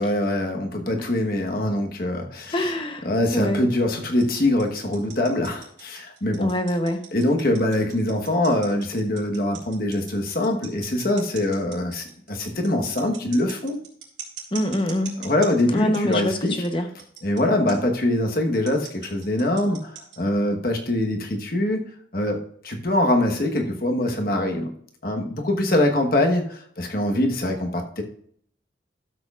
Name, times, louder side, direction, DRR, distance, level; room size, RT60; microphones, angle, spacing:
voice 1, 0.0-2.7 3.0-6.5 7.1-13.8 15.2-16.6 17.2-21.9 22.1-24.7 25.0-28.0, left 1 dB, 50° left, 3 dB, 1.3 m, -23 dB
voice 2, 2.5-3.1 3.3-3.7 6.4-7.0 14.5-15.2 15.7-16.9, left 1 dB, 30° left, 6 dB, 0.9 m, -24 dB
sound 1, 4.2-16.7 17.0-17.4 17.7-17.8 18.5-20.3, right 9 dB, 90° right, 2.8 m, -40 dB
12.5 x 7.8 x 2.5 m, 0.62 s
head